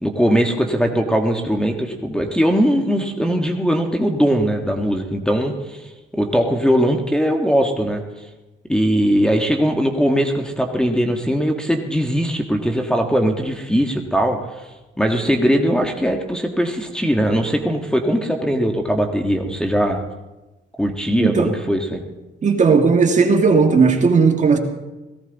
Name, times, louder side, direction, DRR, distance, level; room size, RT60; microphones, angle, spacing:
voice 1, 0.0-8.0 8.7-14.7 15.0-20.0 20.8-22.0, equal, 5° left, 1 dB, 1.5 m, -20 dB
voice 2, 21.2-21.5 22.4-24.6, right 5 dB, 35° right, 3 dB, 2.1 m, -15 dB
18.0 x 16.0 x 4.0 m, 1.1 s
cardioid pair, 90°, 20 cm